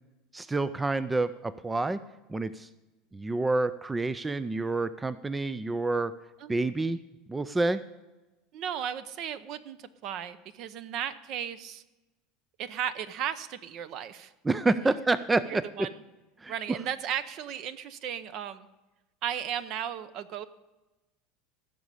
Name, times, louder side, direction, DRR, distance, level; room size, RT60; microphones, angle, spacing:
voice 1, 0.3-2.0 2.3-2.7 3.1-6.1 6.5-7.0 7.3-7.8 14.4-15.6 16.4-16.8, right 2 dB, 10° right, 15 dB, 0.3 m, -28 dB
voice 2, 8.5-11.8 12.6-14.3 15.5-15.9 16.5-18.7 19.2-20.4, right 9 dB, 45° right, 15 dB, 0.6 m, -35 dB
15.5 x 6.2 x 6.8 m, 1.1 s
supercardioid pair, 150°, 0 cm